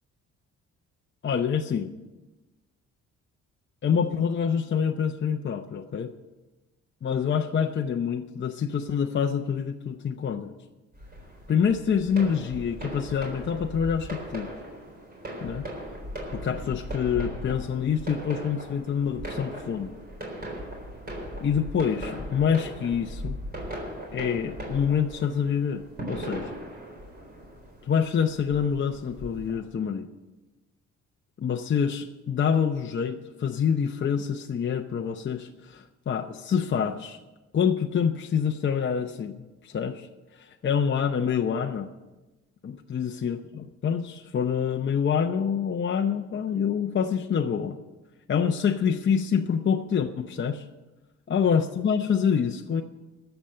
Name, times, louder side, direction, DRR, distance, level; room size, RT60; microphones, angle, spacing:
voice 1, 1.2-1.9 3.8-6.1 7.0-10.5 11.5-14.5 15.4-15.7 16.3-19.9 21.4-23.4 24.1-26.5 27.8-30.1 31.4-37.2 37.5-40.1 40.4-41.9 42.6-47.8 48.3-50.6 51.3-52.8, left 7 dB, 40° left, 4 dB, 0.7 m, -26 dB
sound 1, 10.9-29.5, equal, 30° right, 3.9 m, -38 dB
13.0 x 7.0 x 8.7 m, 1.1 s
cardioid pair, 90°, 30 cm